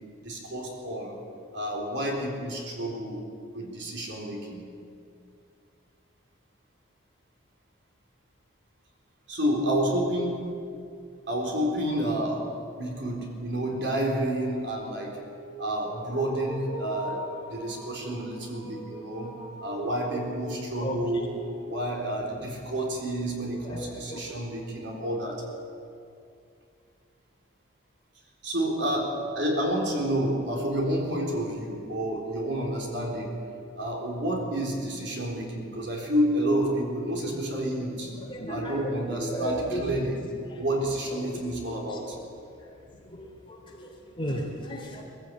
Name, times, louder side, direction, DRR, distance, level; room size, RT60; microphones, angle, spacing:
voice 1, 0.2-1.2 1.5-3.3 3.5-4.7 9.3-10.6 11.3-15.2 15.6-17.2 17.5-21.3 21.6-25.4 28.4-33.4 33.8-38.1 38.5-40.2 40.5-42.2, right 1 dB, 65° right, 0 dB, 3.9 m, -29 dB
sound 1, 12.2-22.5, right 1 dB, 20° right, 6.0 m, -43 dB
voice 2, 20.8-21.3 23.5-24.2 38.1-40.0 40.5-40.6 41.1-42.0 42.6-42.8 43.1-45.0, equal, 25° left, -1 dB, 3.2 m, -35 dB
21.0 x 15.5 x 8.8 m, 2.4 s
head